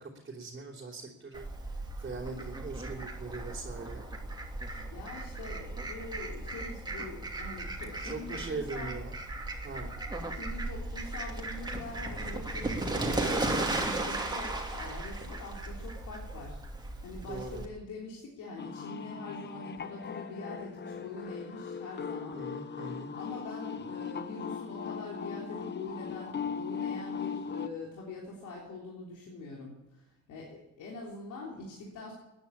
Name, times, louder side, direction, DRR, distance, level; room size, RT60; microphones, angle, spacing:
voice 1, 0.0-4.0 8.0-9.1 9.6-9.9 17.2-17.6 22.3-23.1, right 3 dB, 35° right, -4 dB, 3.4 m, -41 dB
Fowl, 1.3-17.6, right 2 dB, 15° right, 2.7 m, -36 dB
voice 2, 4.9-8.9 10.3-16.7 17.0-22.4 23.1-32.1, left 2 dB, 80° left, -3 dB, 3.5 m, -44 dB
sound 1, 18.6-27.7, left 6 dB, 35° left, 0.9 m, -39 dB
14.5 x 10.0 x 8.6 m, 0.93 s
cardioid pair, 90°, 30 cm